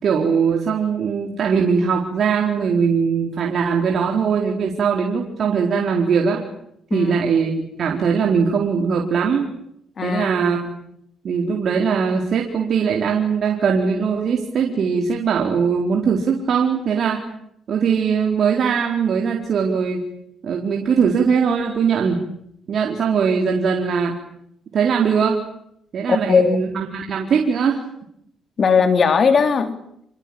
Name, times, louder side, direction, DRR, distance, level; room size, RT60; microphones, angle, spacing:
voice 1, 0.0-6.4 6.9-7.5 7.8-9.5 10.0-10.7 11.2-17.2 17.7-20.0 20.4-22.2 22.7-24.1 24.7-25.4 25.9-27.8, right 6 dB, 60° right, 2 dB, 4.3 m, -20 dB
voice 2, 10.0-10.5 26.1-26.6 28.6-29.8, left 5 dB, 45° left, 9 dB, 3.5 m, -18 dB
28.5 x 23.0 x 9.0 m, 0.75 s
cardioid pair, 90°, 0 cm